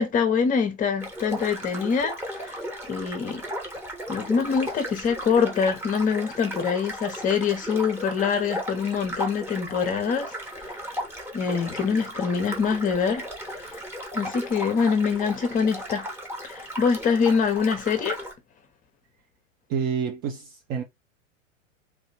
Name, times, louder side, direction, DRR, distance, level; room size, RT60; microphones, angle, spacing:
voice 1, 0.0-2.6 2.9-3.4 4.1-10.9 11.3-13.8 14.1-16.1 16.4-18.2, left 6 dB, 20° left, 0.9 m, -25 dB
sound 1, 1.0-18.3, equal, 5° right, 1.3 m, -36 dB
voice 2, 19.7-20.8, right 7 dB, 25° right, 0.5 m, -28 dB
3.4 x 2.8 x 4.3 m
figure-of-eight pair, 95°, 39 cm